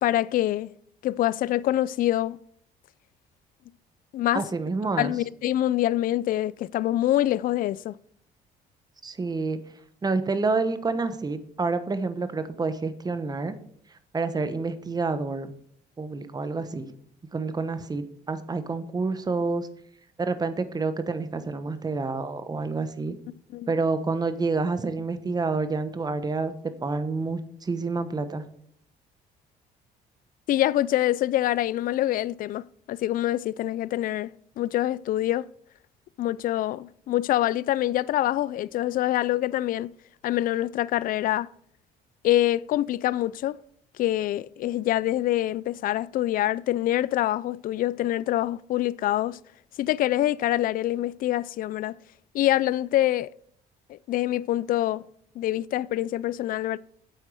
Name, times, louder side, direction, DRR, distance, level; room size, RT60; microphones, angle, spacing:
voice 1, 0.0-0.7 1.0-2.4 4.1-4.4 5.0-7.9 23.5-23.7 30.5-34.3 34.6-35.4 36.2-39.9 40.2-41.5 42.2-43.6 44.0-49.4 49.8-52.0 52.3-53.3 53.9-55.0 55.4-56.8, left 14 dB, 55° left, 0.4 m, -25 dB
voice 2, 4.3-5.1 9.0-9.6 10.0-13.6 14.1-15.5 16.0-16.9 17.3-19.7 20.2-23.2 23.7-26.5 26.8-28.4, right 3 dB, 25° right, 1.2 m, -28 dB
9.2 x 8.1 x 6.4 m
cardioid pair, 110°, 17 cm